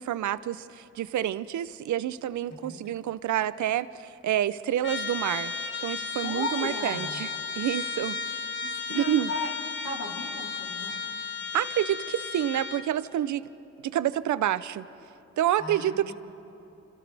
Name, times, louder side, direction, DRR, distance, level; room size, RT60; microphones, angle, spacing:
voice 1, 0.0-5.5 5.8-7.3 7.6-8.2 8.9-9.3 11.5-13.5 13.8-14.8 15.4-16.1, right 11 dB, 70° right, 16 dB, 0.7 m, -28 dB
Trumpet, 4.8-12.9, left 5 dB, 40° left, 1.4 m, -34 dB
voice 2, 6.2-7.2 8.6-9.5 9.8-11.0 15.6-16.0, left 3 dB, 55° left, -1 dB, 3.6 m, -35 dB
29.0 x 26.0 x 3.4 m, 3.0 s
cardioid pair, 65°, 30 cm